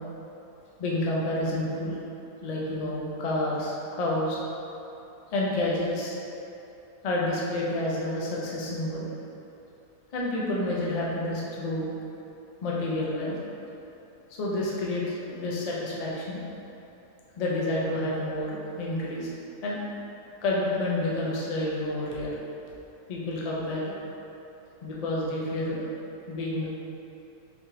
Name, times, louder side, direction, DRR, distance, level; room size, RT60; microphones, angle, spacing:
voice 1, 0.8-2.0 2.4-4.4 5.3-6.1 7.0-9.1 10.1-11.9 12.6-13.4 14.3-16.4 17.4-19.3 19.6-19.8 20.4-22.4 23.1-23.9 24.8-25.9 26.3-26.7, left 1 dB, 80° left, -5 dB, 0.3 m, -29 dB
4.1 x 3.2 x 2.8 m, 2.9 s
omnidirectional pair, 1.5 m